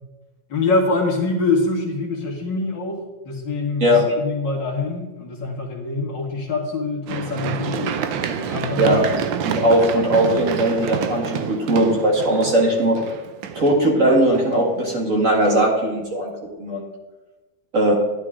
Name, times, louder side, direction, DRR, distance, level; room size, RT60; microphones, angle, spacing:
voice 1, 0.5-8.0 8.3-9.0, left 3 dB, 60° left, -1 dB, 2.6 m, -24 dB
Run, 7.1-15.0 15.5-15.6, right 7 dB, 70° right, 1.5 m, -28 dB
voice 2, 9.4-13.0 13.5-16.9 17.7-17.9, right 1 dB, 40° right, -1 dB, 2.3 m, -19 dB
11.5 x 11.0 x 3.7 m, 1.1 s
omnidirectional pair, 2.2 m